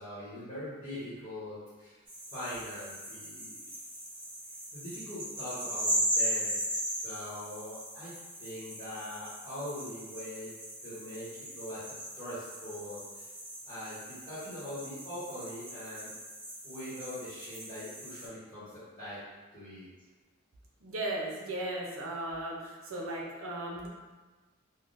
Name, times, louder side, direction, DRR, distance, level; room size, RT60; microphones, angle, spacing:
voice 1, 0.0-2.0 2.3-3.6 4.7-6.5 7.0-8.1 8.4-10.5 10.8-13.3 13.6-16.1 16.6-19.2 19.5-19.9, left 1 dB, 20° left, -13 dB, 1.1 m, -42 dB
sound 1, 2.1-18.3, equal, 20° right, 1.4 m, -38 dB
voice 2, 20.8-23.9, right 1 dB, 75° right, -2 dB, 0.6 m, -36 dB
3.5 x 2.2 x 2.5 m, 1.3 s
head